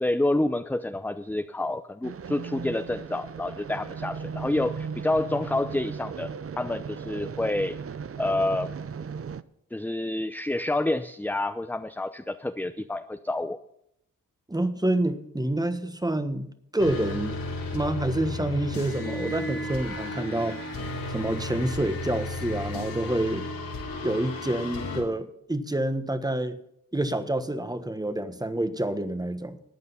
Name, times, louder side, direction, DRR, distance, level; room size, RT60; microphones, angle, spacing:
voice 1, 0.0-7.8 8.2-8.7 9.7-13.6, left 2 dB, 5° left, 9 dB, 0.6 m, -28 dB
sound 1, 2.0-9.4, right 6 dB, 40° right, 0.7 m, -37 dB
voice 2, 14.5-17.4 17.7-20.6 21.1-23.5 24.0-26.6 26.9-29.6, right 1 dB, 10° right, 11 dB, 1.3 m, -28 dB
sound 2, 16.8-25.0, left 2 dB, 85° left, 3.4 m, -34 dB
14.0 x 9.2 x 5.7 m, 0.75 s
cardioid pair, 55°, 34 cm